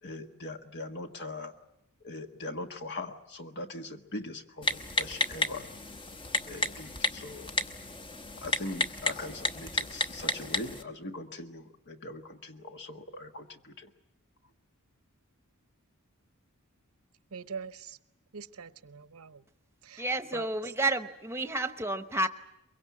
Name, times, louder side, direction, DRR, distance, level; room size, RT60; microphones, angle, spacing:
voice 1, 0.0-1.5 2.0-5.7 6.5-7.5 8.4-13.9, left 2 dB, 55° left, 6 dB, 1.5 m, -41 dB
Typing, 4.6-10.8, left 2 dB, 25° left, 1.1 m, -32 dB
voice 2, 17.3-18.0 18.3-19.4 19.8-20.0 20.3-20.5, right 5 dB, 85° right, 13 dB, 0.9 m, -42 dB
voice 3, 20.0-22.3, right 2 dB, 10° right, 9 dB, 1.1 m, -30 dB
23.0 x 23.0 x 8.5 m, 0.82 s
head